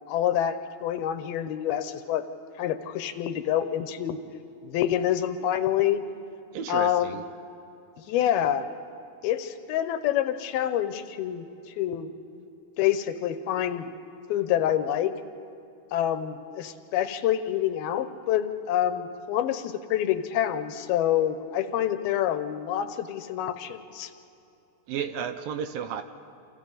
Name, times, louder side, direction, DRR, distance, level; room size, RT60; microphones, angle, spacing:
voice 1, 0.1-2.2 2.6-4.2 4.6-6.0 6.7-7.3 8.1-8.7 9.2-11.5 11.8-12.1 12.8-13.8 14.3-15.1 15.9-24.1, left 11 dB, 80° left, 10 dB, 2.7 m, -27 dB
voice 2, 6.5-7.2 24.9-26.0, right 8 dB, 75° right, 8 dB, 2.3 m, -32 dB
28.5 x 27.5 x 4.0 m, 2.8 s
omnidirectional pair, 4.5 m